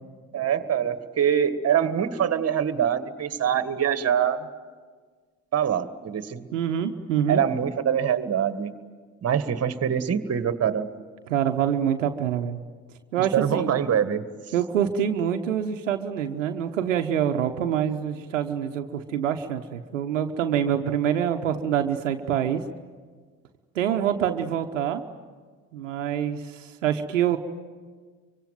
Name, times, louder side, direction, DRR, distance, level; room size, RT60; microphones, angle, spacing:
voice 1, 0.3-4.5 5.5-6.4 7.3-8.7 9.2-10.9 13.2-14.2, right 8 dB, 40° right, 11 dB, 1.9 m, -24 dB
voice 2, 6.5-7.4 11.3-12.6 13.1-13.8 14.5-22.6 23.7-25.0 25.7-27.4, right 9 dB, 85° right, 6 dB, 1.0 m, -26 dB
25.0 x 24.5 x 9.3 m, 1.5 s
hypercardioid pair, 60°, 37 cm